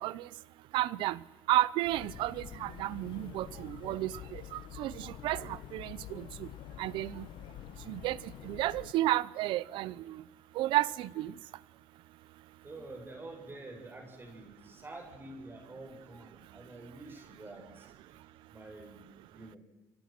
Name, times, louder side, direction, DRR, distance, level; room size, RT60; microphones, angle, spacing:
voice 1, 0.7-1.2 1.5-6.5 6.8-7.3 7.9-8.2 8.4-10.2 10.6-11.3, right 15 dB, 85° right, 0.7 m, -32 dB
sound 1, 1.8-8.9, left 12 dB, 80° left, 1.0 m, -47 dB
voice 2, 12.6-17.9 18.5-19.6, right 2 dB, 25° right, 7.8 m, -48 dB
28.0 x 25.0 x 6.1 m
cardioid pair, 85°, 8 cm